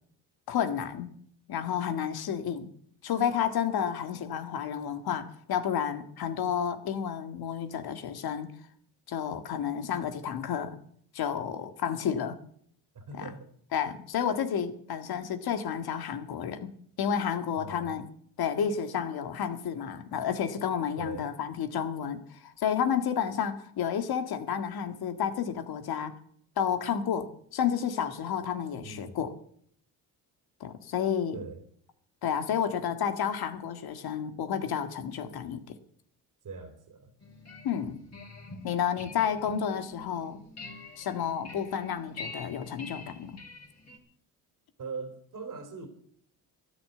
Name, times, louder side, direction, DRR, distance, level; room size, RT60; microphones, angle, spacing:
voice 1, 0.5-1.1 1.5-2.7 3.0-8.5 9.1-10.8 11.1-12.4 13.2-13.3 13.7-16.7 17.0-18.0 18.4-26.2 26.6-29.3 30.6-31.4 32.2-35.8 37.6-38.0 38.6-40.4 41.0-43.3, left 8 dB, 65° left, 9 dB, 1.9 m, -31 dB
voice 2, 12.9-13.5 17.6-18.0 21.0-21.3 28.8-29.2 31.3-31.6 36.4-37.1 44.8-45.9, right 4 dB, 50° right, 7 dB, 3.1 m, -41 dB
sound 1, 37.2-44.0, left 3 dB, 40° left, 4.2 m, -46 dB
13.0 x 10.5 x 7.8 m, 0.63 s
supercardioid pair, 70°, 41 cm